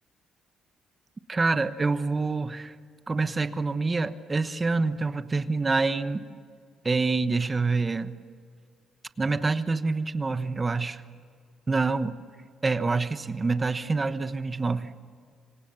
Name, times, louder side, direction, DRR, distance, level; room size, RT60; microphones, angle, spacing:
voice 1, 1.3-2.7 3.1-6.2 6.8-8.1 9.2-11.0 11.7-12.2 12.6-14.9, right 3 dB, 25° right, 11 dB, 1.1 m, -26 dB
26.0 x 25.5 x 7.0 m, 2.1 s
cardioid pair, 110°, 0 cm